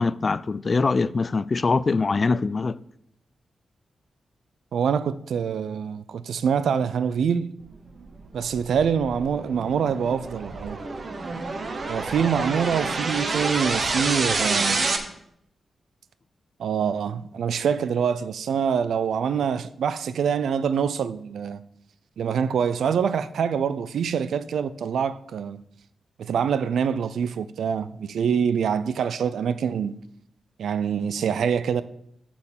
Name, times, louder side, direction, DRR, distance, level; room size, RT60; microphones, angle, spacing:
voice 1, 0.0-2.8, left 4 dB, 45° left, 0.4 m, -23 dB
voice 2, 4.7-7.5 8.3-10.8 11.9-14.8 16.6-21.6 22.2-25.6 26.2-30.0 30.6-31.8, right 7 dB, 85° right, 0.4 m, -25 dB
sound 1, 8.0-15.0, right 3 dB, 50° right, 1.2 m, -28 dB
9.8 x 4.3 x 7.2 m
cardioid pair, 70°, 0 cm